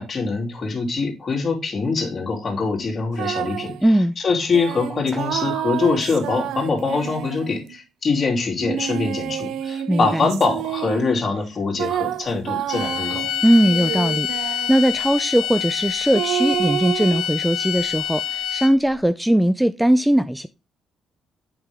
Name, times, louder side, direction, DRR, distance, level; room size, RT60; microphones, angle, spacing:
voice 1, 0.0-3.7 4.2-13.3, left 4 dB, 40° left, 2.7 m, -23 dB
sound 1, 3.1-3.8 4.5-7.8 8.6-11.2 11.8-14.9 16.1-17.2, right 11 dB, 85° right, 0.4 m, -29 dB
voice 2, 3.8-4.2 9.9-10.3 13.4-20.5, right 1 dB, 5° right, 0.4 m, -19 dB
sound 2, 12.7-18.9, left 9 dB, 75° left, 1.1 m, -27 dB
7.9 x 5.6 x 3.5 m
cardioid pair, 90°, 0 cm